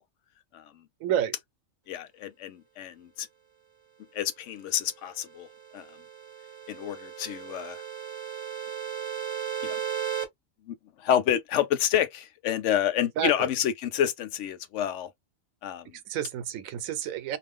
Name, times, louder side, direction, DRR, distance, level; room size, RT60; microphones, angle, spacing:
voice 1, 1.0-1.3 13.2-13.5 16.1-17.4, right 10 dB, 85° right, 1.0 m, -29 dB
voice 2, 1.9-3.3 4.1-5.5 5.7-5.9 6.7-7.8 9.6-9.8 10.7-15.1 15.6-16.0, left 10 dB, 70° left, 0.8 m, -28 dB
sound 1, 5.3-10.3, right 8 dB, 25° right, 0.8 m, -36 dB
2.4 x 2.0 x 3.5 m
omnidirectional pair, 1.4 m